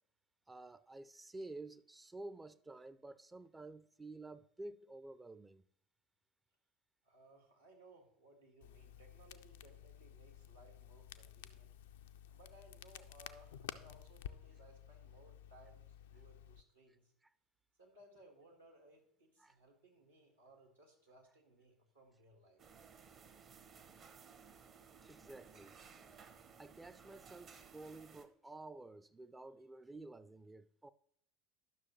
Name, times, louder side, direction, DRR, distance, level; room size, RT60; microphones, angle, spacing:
voice 1, 0.5-5.6 19.4-19.6 25.0-25.8 26.6-30.9, right 2 dB, 15° right, 0.4 m, -51 dB
voice 2, 7.0-11.7 12.3-15.8 16.1-17.1 17.8-22.6, right 1 dB, 85° right, 1.7 m, -63 dB
Crackle, 8.6-16.6, left 11 dB, 65° left, 0.3 m, -53 dB
sound 1, 22.6-28.2, right 6 dB, 40° right, 0.7 m, -59 dB
11.5 x 6.1 x 3.0 m
figure-of-eight pair, 70°, 0 cm